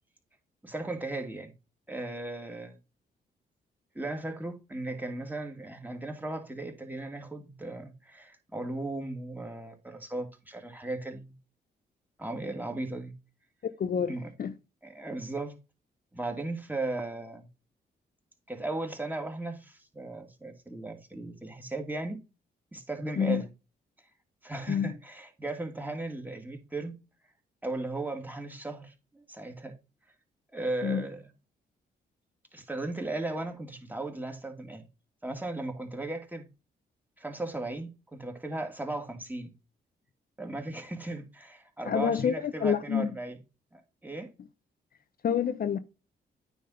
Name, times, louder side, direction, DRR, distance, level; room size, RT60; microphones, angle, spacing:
voice 1, 0.6-1.5 1.9-2.8 3.9-11.4 12.2-13.1 14.1-14.3 14.8-15.6 16.1-17.5 18.5-22.2 22.7-23.5 24.4-27.0 27.6-29.7 30.5-31.2 32.5-34.8 35.2-36.5 37.2-39.5 40.4-43.4 43.7-44.3, right 2 dB, 10° right, 2.3 m, -36 dB
voice 2, 13.6-14.5 23.2-23.4 24.7-24.9 30.8-31.1 41.8-43.1 45.2-45.8, left 7 dB, 55° left, 0.7 m, -28 dB
9.4 x 3.6 x 5.6 m
cardioid pair, 70°, 18 cm